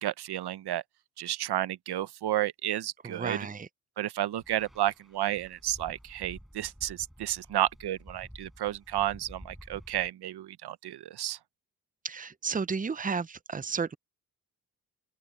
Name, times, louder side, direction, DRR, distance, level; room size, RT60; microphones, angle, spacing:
voice 1, 0.0-0.8 1.2-3.4 4.0-11.4, right 13 dB, 90° right, 0.7 m, -32 dB
voice 2, 3.0-3.7 12.0-14.0, right 5 dB, 20° right, 0.6 m, -32 dB
sound 1, 4.4-10.1, equal, ahead, 4.8 m, -50 dB
open air
cardioid pair, 60°, 39 cm